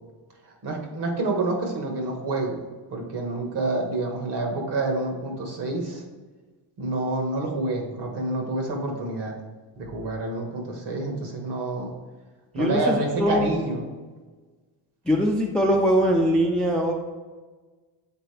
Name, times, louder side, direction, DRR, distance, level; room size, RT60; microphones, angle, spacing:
voice 1, 0.6-6.0 6.8-9.3 9.8-11.9 12.5-13.9, right 2 dB, 55° right, 2 dB, 1.7 m, -28 dB
voice 2, 12.6-13.5 15.1-16.9, equal, ahead, 1 dB, 0.5 m, -22 dB
8.0 x 3.8 x 3.4 m, 1.3 s
cardioid pair, 110°, 49 cm